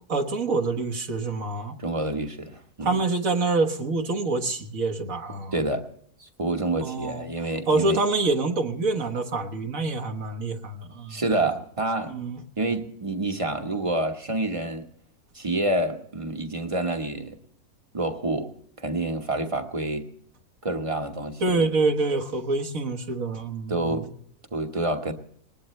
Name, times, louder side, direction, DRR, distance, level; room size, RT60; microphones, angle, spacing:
voice 1, 0.1-1.8 2.8-5.6 6.8-7.3 7.7-11.2 12.1-12.4 21.4-24.1, right 3 dB, 65° right, 1.8 m, -26 dB
voice 2, 1.8-3.0 5.5-5.8 6.2-8.0 11.1-12.1 12.6-14.9 15.3-17.4 17.9-18.5 18.8-20.1 20.6-21.7 23.7-24.1 24.5-25.1, right 2 dB, 25° right, 1.2 m, -28 dB
21.0 x 19.5 x 3.2 m
omnidirectional pair, 1.6 m